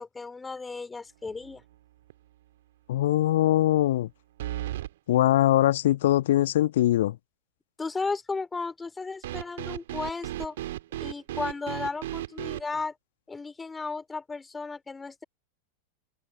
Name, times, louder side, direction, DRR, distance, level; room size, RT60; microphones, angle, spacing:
voice 1, 0.0-1.6 7.8-10.6 11.0-12.9 13.3-15.2, left 4 dB, 10° left, 4.9 m, -34 dB
sound 1, 1.3-1.7 2.1-2.2 4.4-4.9 9.2-12.6, right 14 dB, 55° right, 2.0 m, -35 dB
voice 2, 2.9-4.1 5.1-7.2, left 13 dB, 55° left, 1.5 m, -22 dB
figure-of-eight pair, 90°, 0 cm